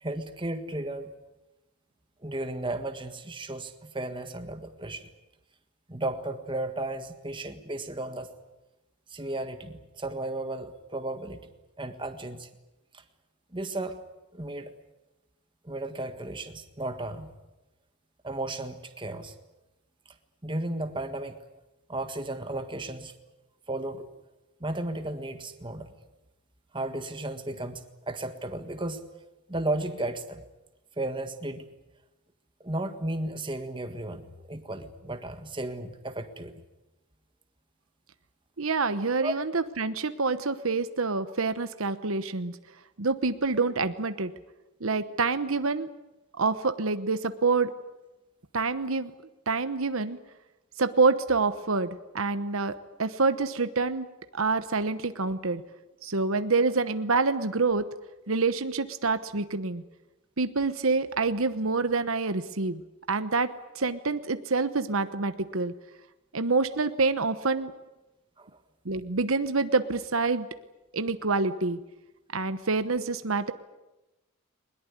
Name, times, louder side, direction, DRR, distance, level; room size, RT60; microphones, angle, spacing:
voice 1, 0.0-1.1 2.2-5.1 5.9-8.3 9.1-11.5 11.8-12.5 12.9-13.0 13.5-14.0 14.3-14.7 15.6-17.3 18.2-19.3 20.4-21.4 21.9-23.1 23.7-24.1 24.6-25.9 26.7-29.1 29.5-30.4 31.0-31.7 32.6-36.5 39.2-39.3 68.4-68.5, right 2 dB, 20° right, 8 dB, 1.6 m, -34 dB
voice 2, 38.6-42.6 43.0-44.3 44.8-45.9 46.4-47.7 48.5-49.1 49.5-50.2 50.8-54.1 54.3-55.6 56.0-57.9 58.3-59.8 60.4-62.8 63.1-65.7 66.3-67.7 68.8-70.5 70.9-71.8 72.3-73.5, right 4 dB, 75° right, 11 dB, 1.1 m, -27 dB
21.5 x 21.0 x 9.7 m, 1.0 s
head